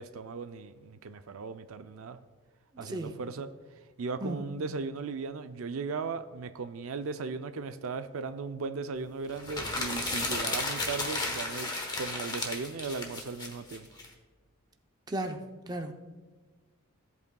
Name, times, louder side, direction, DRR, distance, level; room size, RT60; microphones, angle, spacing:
voice 1, 0.0-2.2 2.8-3.5 4.0-13.9, right 4 dB, 65° right, 10 dB, 0.4 m, -37 dB
voice 2, 2.8-3.2 4.2-4.4 15.1-15.9, right 1 dB, 20° right, 5 dB, 0.6 m, -35 dB
sound 1, 9.4-14.1, left 2 dB, 20° left, 1.1 m, -33 dB
16.0 x 8.1 x 2.3 m, 1.3 s
head